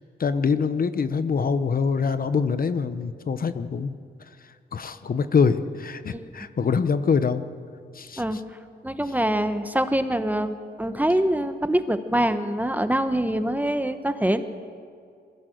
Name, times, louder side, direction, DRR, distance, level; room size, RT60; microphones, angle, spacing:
voice 1, 0.2-3.9 4.7-7.4 8.0-8.2, left 5 dB, 50° left, 11 dB, 0.9 m, -24 dB
voice 2, 8.8-14.4, right 1 dB, 10° right, 10 dB, 0.9 m, -24 dB
22.0 x 15.5 x 7.9 m, 2.3 s
wide cardioid pair, 120°, 19 cm